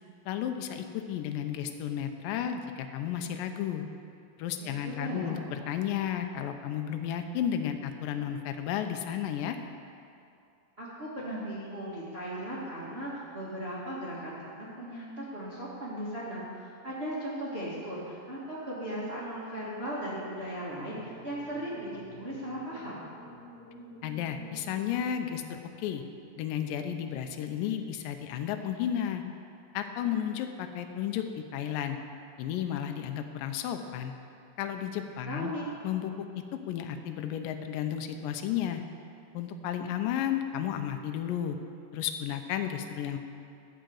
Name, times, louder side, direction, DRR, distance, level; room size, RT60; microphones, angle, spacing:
voice 1, 0.3-3.8 4.4-9.6 24.0-26.0 26.4-29.2 29.7-32.0 32.4-34.1 34.6-35.5 35.8-36.1 36.7-38.8 39.3-41.6 41.9-43.2, left 9 dB, 85° left, 6 dB, 2.0 m, -33 dB
voice 2, 4.6-5.4 10.8-23.0 35.3-35.7, right 1 dB, 80° right, -8 dB, 0.5 m, -37 dB
sound 1, 20.5-26.6, left 2 dB, 35° left, 1.7 m, -51 dB
13.0 x 5.0 x 7.8 m, 2.5 s
omnidirectional pair, 4.6 m